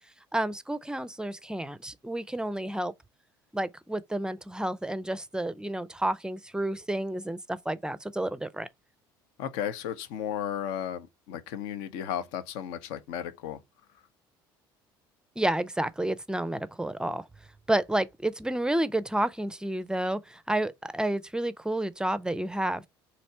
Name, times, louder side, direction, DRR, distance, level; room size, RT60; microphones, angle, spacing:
voice 1, 0.3-2.9 3.5-8.7 15.4-17.3 17.7-22.8, right 1 dB, 5° right, 0.4 m, -30 dB
voice 2, 9.4-13.6, left 9 dB, 70° left, 0.7 m, -34 dB
4.2 x 2.9 x 4.3 m
hypercardioid pair, 65°, 11 cm